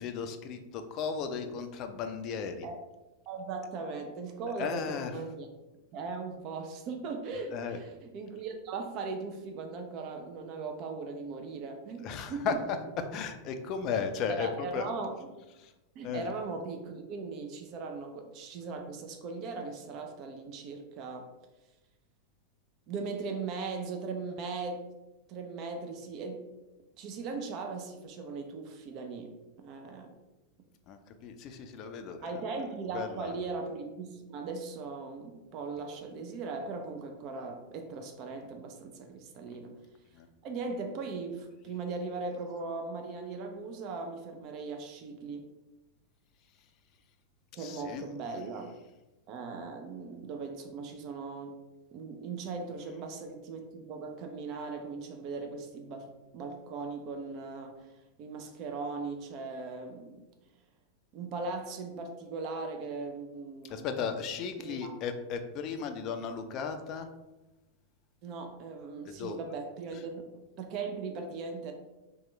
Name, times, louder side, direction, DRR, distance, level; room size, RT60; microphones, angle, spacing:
voice 1, 0.0-2.7 4.5-5.3 7.4-7.8 12.0-14.9 15.5-15.7 16.0-16.3 30.9-32.4 32.8-33.4 40.1-40.3 47.6-48.4 52.8-52.9 63.6-67.1 69.1-69.4 69.9-70.0, left 6 dB, 40° left, 7 dB, 0.3 m, -36 dB
voice 2, 3.3-5.5 5.9-12.6 14.3-15.1 16.0-21.3 22.9-24.8 25.3-26.4 27.0-30.1 32.2-39.7 40.4-45.5 47.5-48.7 49.3-51.6 51.9-57.9 58.2-60.2 61.1-64.0 64.6-64.9 68.2-71.7, right 4 dB, 40° right, 5 dB, 0.3 m, -39 dB
2.9 x 2.2 x 3.1 m, 1.0 s
figure-of-eight pair, 90°, 0 cm